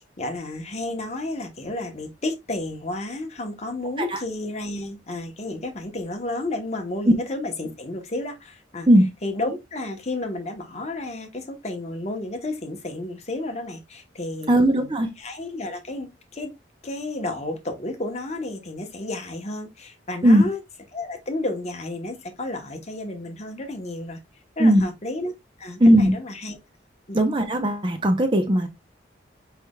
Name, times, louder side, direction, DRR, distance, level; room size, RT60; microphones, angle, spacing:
voice 1, 0.0-8.9 9.2-16.6 16.8-20.6 20.9-24.2 24.6-25.3 25.6-26.6 27.1-27.2, left 2 dB, 35° left, 1.0 m, -32 dB
voice 2, 14.5-15.1 20.2-20.4 24.6-24.8 25.8-26.1 27.1-28.7, right 1 dB, 25° right, 0.7 m, -17 dB
4.9 x 4.7 x 2.3 m
head